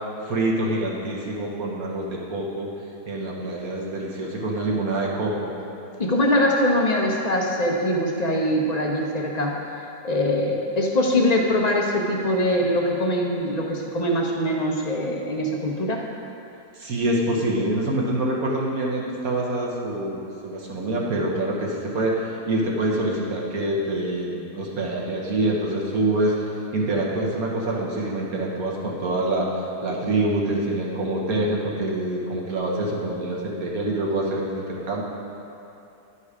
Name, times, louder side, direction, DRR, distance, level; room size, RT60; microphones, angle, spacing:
voice 1, 0.2-2.7 3.1-5.5 16.7-26.3 26.7-29.5 29.8-35.0, right 1 dB, 60° right, -3 dB, 1.6 m, -26 dB
voice 2, 6.0-9.5 10.0-16.0, left 1 dB, 40° left, -1 dB, 0.6 m, -22 dB
11.0 x 5.4 x 4.9 m, 2.8 s
omnidirectional pair, 1.8 m